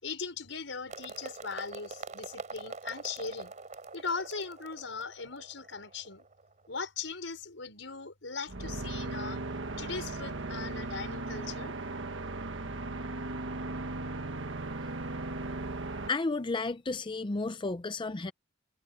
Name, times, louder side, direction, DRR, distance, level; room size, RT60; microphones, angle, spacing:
voice 1, 0.0-3.5 3.9-6.3 6.7-9.4 9.8-11.7, left 4 dB, 85° left, 5.4 m, -39 dB
sound 1, 0.9-6.8, right 3 dB, 40° right, 3.4 m, -45 dB
sound 2, 8.5-16.1, right 2 dB, 85° right, 1.4 m, -37 dB
voice 2, 16.1-18.3, left 3 dB, 25° left, 0.5 m, -32 dB
head